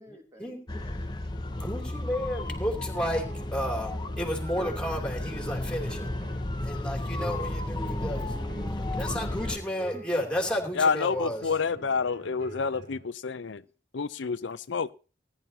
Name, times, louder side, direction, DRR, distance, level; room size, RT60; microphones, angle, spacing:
voice 1, 0.0-1.5 7.7-9.6 9.9-10.1, left 1 dB, 15° right, 2 dB, 2.7 m, -50 dB
sound 1, 0.7-9.6, left 1 dB, 25° left, 0.9 m, -33 dB
voice 2, 1.5-3.2 3.5-6.1 6.6-8.3 9.0-11.4, equal, 5° left, 1 dB, 2.9 m, -32 dB
sound 2, 2.6-13.0, right 2 dB, 85° right, 6.5 m, -45 dB
voice 3, 10.7-13.6 13.9-14.9, left 5 dB, 70° left, 15 dB, 0.6 m, -28 dB
19.0 x 11.0 x 2.8 m, 0.34 s
head